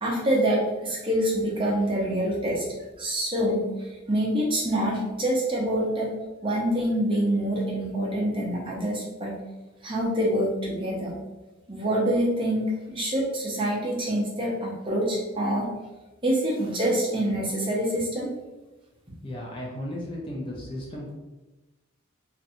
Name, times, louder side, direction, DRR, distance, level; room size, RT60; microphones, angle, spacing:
voice 1, 0.0-2.6 3.0-6.1 6.4-9.4 9.8-11.2 11.7-15.7 16.2-18.3, right 1 dB, 25° right, -4 dB, 0.5 m, -26 dB
voice 2, 19.2-21.1, left 1 dB, 25° left, -3 dB, 0.4 m, -35 dB
2.5 x 2.1 x 2.6 m, 1.1 s
head